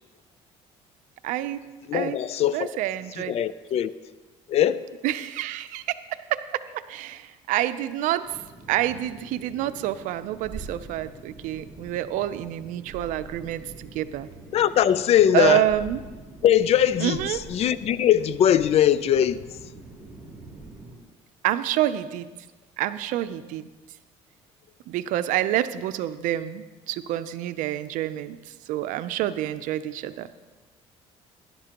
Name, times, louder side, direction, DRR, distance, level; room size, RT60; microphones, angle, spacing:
voice 1, 1.2-1.6 1.9-2.2 2.5-3.4 5.0-6.0 6.3-8.3 8.7-14.3 15.3-16.0 17.0-17.4 21.4-22.3 22.8-23.7 24.9-28.4 28.7-30.4, right 13 dB, 75° right, 0.6 m, -27 dB
voice 2, 1.9-2.7 3.2-3.9 4.5-4.8 14.5-15.6 16.4-19.4, left 10 dB, 50° left, 0.5 m, -21 dB
sound 1, 8.2-21.0, right 3 dB, 10° right, 4.2 m, -44 dB
17.0 x 11.0 x 3.0 m
cardioid pair, 105°, 13 cm